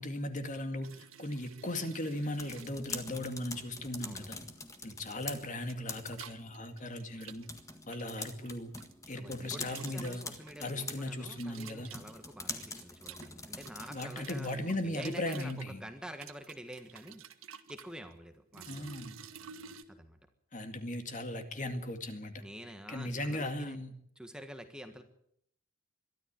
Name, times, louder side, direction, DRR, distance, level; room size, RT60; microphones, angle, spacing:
voice 1, 0.0-4.4 4.8-7.4 7.9-8.7 9.1-10.2 10.6-11.9 13.9-15.8 18.7-19.2 20.5-22.3 22.9-23.9, left 1 dB, 40° left, 7 dB, 2.2 m, -37 dB
sound 1, 0.8-2.7 3.5-3.8 4.7-5.1 5.4-8.9 9.3-10.7 11.3-15.7 16.1-17.9 18.5-19.8, right 7 dB, 90° right, 1.5 m, -51 dB
sound 2, 2.1-14.6, left 3 dB, 15° left, 1.7 m, -45 dB
voice 2, 9.1-19.0 19.9-20.2 22.4-23.8 24.1-25.0, equal, 5° right, 6 dB, 1.5 m, -48 dB
22.5 x 13.5 x 8.8 m, 0.70 s
head